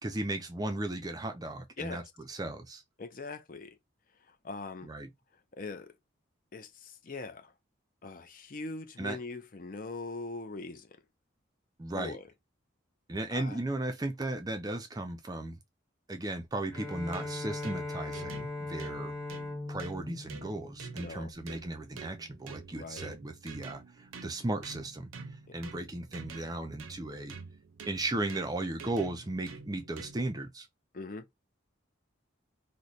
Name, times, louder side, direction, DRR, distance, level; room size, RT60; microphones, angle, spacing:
voice 1, 0.0-2.0 2.3-2.8 4.8-5.1 9.0-9.2 11.8-12.2 13.1-15.6 16.1-19.1 19.7-25.1 25.5-27.4 27.9-30.7, right 2 dB, 20° right, 0.4 m, -36 dB
voice 2, 1.8-2.1 3.0-3.8 4.3-4.9 5.6-5.9 6.5-7.5 8.0-10.9 11.9-12.3 13.3-13.6 21.0-21.3 22.7-23.2 30.9-31.3, left 3 dB, 40° left, 0.5 m, -41 dB
Bowed string instrument, 16.7-21.4, left 2 dB, 10° left, 1.5 m, -40 dB
sound 1, 16.7-30.4, right 4 dB, 85° right, 0.6 m, -48 dB
3.1 x 2.1 x 3.9 m
head